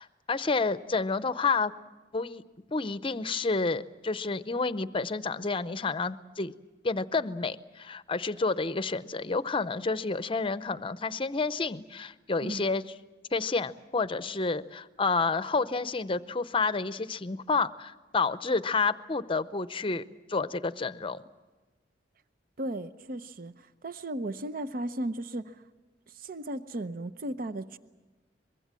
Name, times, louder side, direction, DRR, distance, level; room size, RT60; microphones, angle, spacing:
voice 1, 0.0-1.7 2.1-2.4 2.7-6.5 6.8-12.8 13.3-21.2, left 4 dB, 30° left, 14 dB, 0.7 m, -29 dB
voice 2, 22.6-25.6 26.1-27.8, right 1 dB, 55° right, 13 dB, 0.7 m, -36 dB
24.0 x 22.0 x 7.6 m, 1.2 s
head